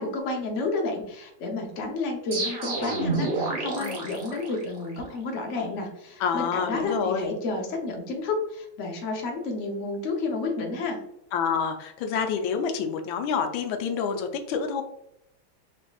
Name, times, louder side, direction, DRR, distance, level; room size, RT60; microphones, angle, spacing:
voice 1, 0.0-11.0, left 3 dB, 55° left, 1 dB, 0.8 m, -31 dB
sound 1, 2.3-5.1, right 3 dB, 55° right, 0.7 m, -29 dB
voice 2, 3.8-4.1 6.2-7.3 11.3-14.8, left 6 dB, 85° left, 5 dB, 1.4 m, -28 dB
4.0 x 3.4 x 2.3 m, 0.79 s
omnidirectional pair, 2.1 m